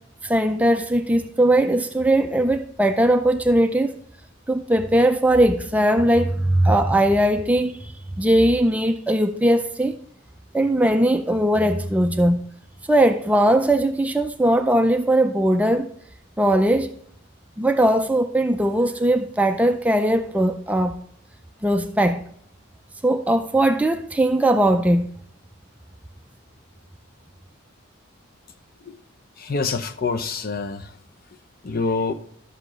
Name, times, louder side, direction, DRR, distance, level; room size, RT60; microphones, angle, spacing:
voice 1, 0.2-4.0 4.5-7.8 8.2-10.0 10.5-12.4 12.9-15.9 16.4-16.9 17.6-21.0 21.6-22.2 23.0-25.1, right 1 dB, 5° right, 0.4 m, -19 dB
voice 2, 29.4-30.9 31.6-32.1, left 4 dB, 45° left, 0.6 m, -26 dB
12.0 x 7.4 x 3.1 m
head